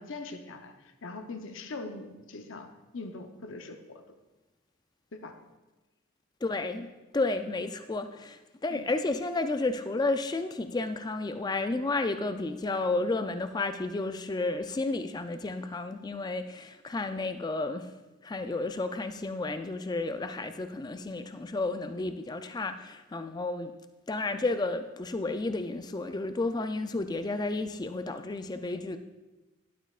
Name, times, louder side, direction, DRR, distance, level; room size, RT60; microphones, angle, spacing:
voice 1, 0.0-2.7 2.9-4.2 5.1-5.4 8.7-8.8, left 3 dB, 65° left, 6 dB, 0.7 m, -42 dB
voice 2, 6.4-17.9 18.2-23.7 24.1-29.0, left 2 dB, 20° left, 8 dB, 0.3 m, -32 dB
11.0 x 8.1 x 2.4 m, 1.1 s
head